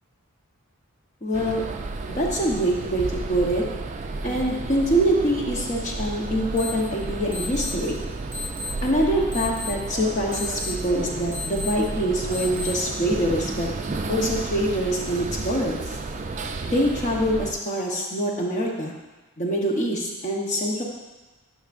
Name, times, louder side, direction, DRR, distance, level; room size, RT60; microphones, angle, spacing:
voice 1, 1.2-1.6 2.1-3.6 4.2-8.0 8.8-13.7 14.1-15.8 16.7-18.9 19.4-20.8, equal, 35° left, -1 dB, 1.0 m, -24 dB
sound 1, 1.3-17.5, right 3 dB, 30° right, 0.3 m, -32 dB
sound 2, 6.6-6.7 7.3-7.7 8.3-8.7 9.3-9.7 10.3-10.7 11.3-11.7 12.3-12.7, left 3 dB, 10° right, 2.0 m, -33 dB
10.5 x 5.9 x 2.5 m, 1.1 s
head